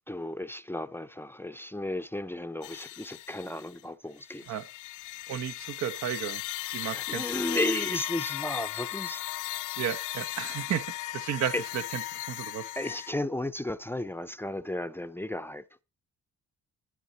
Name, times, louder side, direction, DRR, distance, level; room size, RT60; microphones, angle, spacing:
voice 1, 0.1-4.5 6.8-9.3 11.5-11.6 12.8-15.8, left 1 dB, 5° left, 0.6 m, -34 dB
sound 1, 2.6-3.8 4.2-13.1, left 16 dB, 80° left, 0.6 m, -36 dB
voice 2, 5.3-6.4 6.7-7.3 9.8-12.0 12.3-12.7, right 9 dB, 65° right, 0.9 m, -33 dB
11.5 x 11.0 x 4.1 m
cardioid pair, 90°, 30 cm